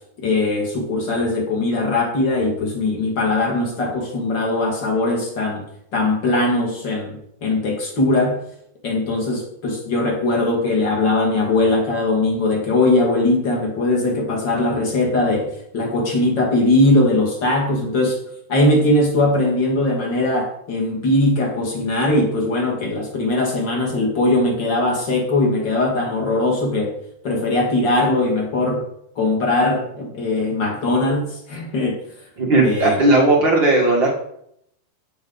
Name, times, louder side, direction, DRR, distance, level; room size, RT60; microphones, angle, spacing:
voice 1, 0.2-5.6 5.9-8.4 8.8-18.2 18.5-26.9 27.2-28.8 29.2-32.0 32.6-33.0, left 2 dB, 35° left, 0 dB, 2.0 m, -20 dB
voice 2, 32.4-34.2, right 2 dB, 60° right, -2 dB, 1.2 m, -16 dB
16.0 x 6.1 x 4.0 m, 0.73 s
omnidirectional pair, 4.8 m